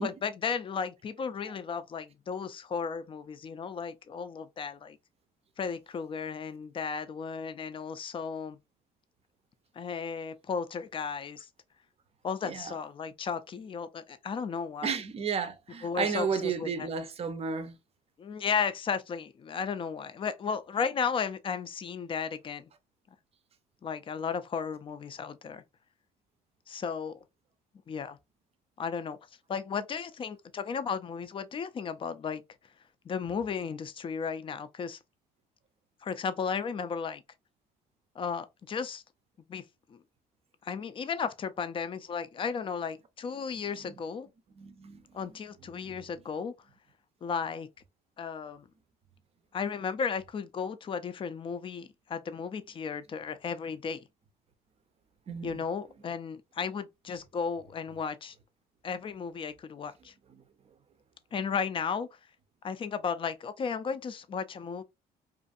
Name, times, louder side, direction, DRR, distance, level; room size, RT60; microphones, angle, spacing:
voice 1, 0.0-5.0 5.6-8.6 9.7-11.5 12.2-14.9 15.8-16.9 18.2-22.7 23.8-25.6 26.7-27.2 27.9-28.2 28.8-29.2 29.5-32.4 33.0-35.0 36.0-37.2 38.2-39.0 39.5-39.6 39.9-40.0 40.6-44.3 45.1-46.5 47.2-47.7 48.2-48.7 49.5-54.0 55.4-58.4 58.8-60.1 61.3-62.1 62.6-64.8, left 6 dB, 30° left, 0.4 m, -34 dB
voice 2, 14.8-17.8 44.6-45.0 55.3-55.6, right 6 dB, 35° right, 0.5 m, -32 dB
2.5 x 2.5 x 2.5 m
cardioid pair, 110°, 17 cm